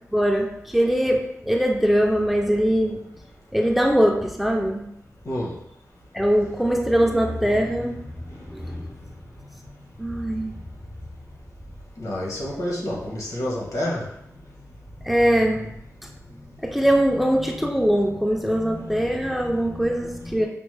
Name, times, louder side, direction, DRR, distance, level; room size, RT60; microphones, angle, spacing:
voice 1, 0.1-3.0 3.5-4.8 6.1-8.0 8.5-8.9 10.0-10.6 15.0-15.7 16.6-20.5, equal, ahead, 1 dB, 0.3 m, -22 dB
voice 2, 8.3-8.7 12.0-14.1, left 1 dB, 75° left, -3 dB, 1.1 m, -29 dB
5.1 x 2.0 x 3.2 m, 0.78 s
wide cardioid pair, 170°, 6 cm